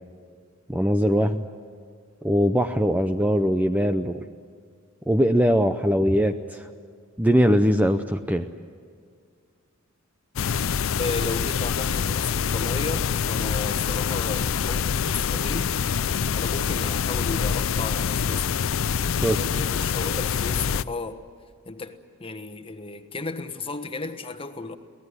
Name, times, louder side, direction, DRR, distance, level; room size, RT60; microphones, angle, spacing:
voice 1, 0.7-1.4 2.2-4.2 5.1-6.7 7.2-8.5 19.2-19.4, equal, 5° right, 0.6 m, -21 dB
sound 1, 10.4-20.8, left 7 dB, 70° left, 0.5 m, -25 dB
voice 2, 11.0-15.7 16.3-18.6 19.3-21.2 21.6-24.8, left 3 dB, 25° left, 1.3 m, -34 dB
23.5 x 17.5 x 9.8 m
head